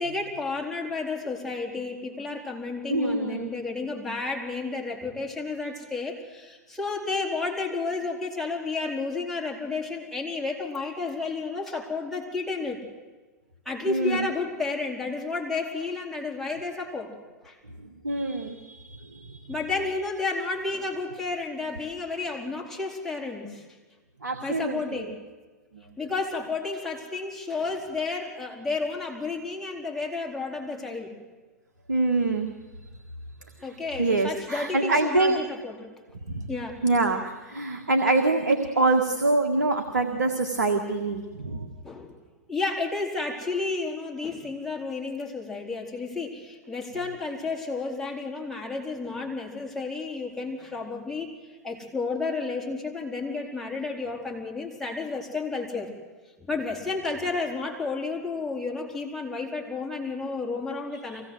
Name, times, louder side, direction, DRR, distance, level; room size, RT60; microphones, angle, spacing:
voice 1, 0.0-12.8 13.6-17.2 17.4-17.6 19.5-23.7 24.4-25.2 26.0-31.2 33.6-35.9 36.5-36.8 41.8-42.1 42.5-51.3 51.6-55.9 56.4-61.2, left 3 dB, 5° left, -2 dB, 4.4 m, -31 dB
voice 2, 2.9-3.5 13.9-14.3 18.0-19.4 24.2-25.1 25.7-25.8 31.9-32.5 34.0-35.4 36.3-36.5 36.8-41.7 61.1-61.2, right 2 dB, 90° right, 5 dB, 1.8 m, -25 dB
24.5 x 17.5 x 7.9 m, 1.3 s
hypercardioid pair, 110°, 9 cm